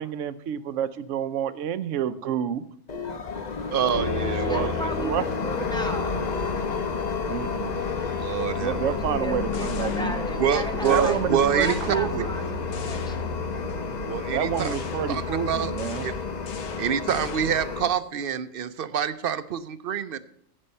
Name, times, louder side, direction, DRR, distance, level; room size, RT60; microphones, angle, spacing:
voice 1, 0.0-2.6 4.5-5.3 7.3-7.8 8.6-10.2 10.9-12.3 14.3-16.1, right 9 dB, 90° right, 14 dB, 1.0 m, -29 dB
sound 1, 2.9-17.9, left 5 dB, 40° left, 0.8 m, -31 dB
voice 2, 3.7-4.7 8.1-9.0 10.4-11.8 14.0-14.7 15.1-15.7 16.0-16.1 16.8-20.2, right 8 dB, 55° right, 13 dB, 0.7 m, -26 dB
sound 2, 3.9-17.6, left 4 dB, 85° left, 1.7 m, -34 dB
voice 3, 4.5-6.1 9.0-13.4, equal, 5° left, 5 dB, 1.0 m, -35 dB
sound 3, 9.2-10.5 10.8-12.4 12.7-13.8 14.6-17.7, left 7 dB, 70° left, 1.1 m, -44 dB
15.0 x 5.5 x 5.4 m, 0.68 s
omnidirectional pair, 1.3 m